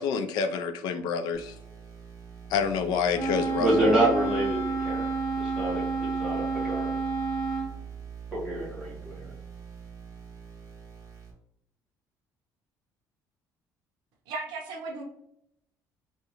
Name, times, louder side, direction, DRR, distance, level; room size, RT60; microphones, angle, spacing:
voice 1, 0.0-1.5 2.5-3.9, left 6 dB, 70° left, 8 dB, 0.4 m, -28 dB
sound 1, 1.3-11.3, right 7 dB, 45° right, 1.1 m, -43 dB
Wind instrument woodwind instrument, 3.1-7.7, right 4 dB, 45° left, 1.5 m, -30 dB
voice 2, 3.6-5.1 5.3-6.9 8.3-9.3, right 1 dB, 10° right, -5 dB, 1.3 m, -27 dB
voice 3, 14.3-15.0, right 3 dB, 85° right, 2 dB, 0.8 m, -35 dB
3.6 x 2.4 x 2.9 m, 0.76 s
cardioid pair, 175°, 7 cm